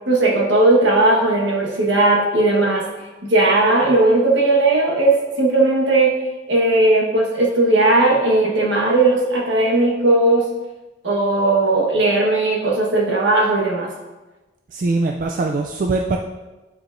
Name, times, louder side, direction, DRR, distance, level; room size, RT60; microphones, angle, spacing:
voice 1, 0.1-2.9 3.2-6.2 6.5-10.5 11.0-13.9, right 2 dB, 70° right, -2 dB, 1.4 m, -17 dB
voice 2, 14.7-16.2, right 3 dB, 45° right, 2 dB, 0.3 m, -21 dB
8.7 x 4.8 x 2.6 m, 1.1 s
head